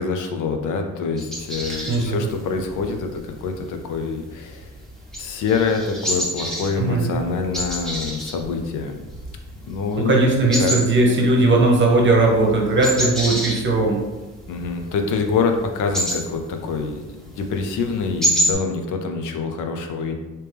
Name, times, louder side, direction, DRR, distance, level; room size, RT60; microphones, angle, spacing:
voice 1, 0.0-4.7 5.2-9.0 9.6-10.1 10.6-10.7 14.5-20.1, left 5 dB, 85° left, 5 dB, 0.6 m, -25 dB
sound 1, 1.2-18.5, equal, ahead, 1.1 m, -30 dB
voice 2, 1.9-2.3 6.8-7.1 10.0-14.0, right 2 dB, 40° right, 0 dB, 0.9 m, -18 dB
3.3 x 2.9 x 3.4 m, 1.1 s
cardioid pair, 90°, 30 cm